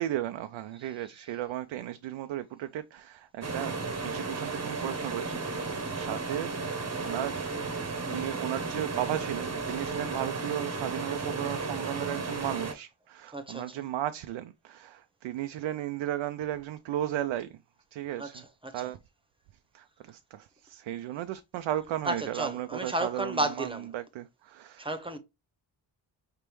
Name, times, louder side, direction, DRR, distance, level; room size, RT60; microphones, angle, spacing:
voice 1, 0.0-17.6 17.9-18.4 18.7-19.0 19.7-24.9, right 12 dB, 70° right, 0.5 m, -35 dB
sound 1, 3.4-12.7, right 4 dB, 35° right, 1.0 m, -34 dB
voice 2, 13.3-13.8 18.2-18.9 22.0-23.9 24.8-25.2, right 2 dB, 10° right, 1.0 m, -33 dB
5.0 x 3.4 x 3.0 m
cardioid pair, 55°, 48 cm